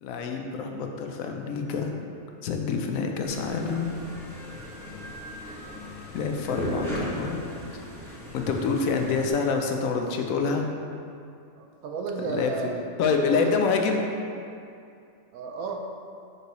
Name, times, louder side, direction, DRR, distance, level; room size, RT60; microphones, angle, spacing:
voice 1, 0.0-1.9 2.4-4.0 6.1-7.4 7.7-7.8 8.1-10.7 12.3-12.5 13.0-14.1, left 5 dB, 80° left, 3 dB, 1.0 m, -27 dB
sound 1, 3.2-9.3, left 1 dB, ahead, 1.2 m, -36 dB
voice 2, 11.6-12.8 13.2-13.5 15.3-15.8, right 4 dB, 85° right, 3 dB, 1.1 m, -33 dB
6.1 x 5.2 x 3.1 m, 2.5 s
omnidirectional pair, 1.4 m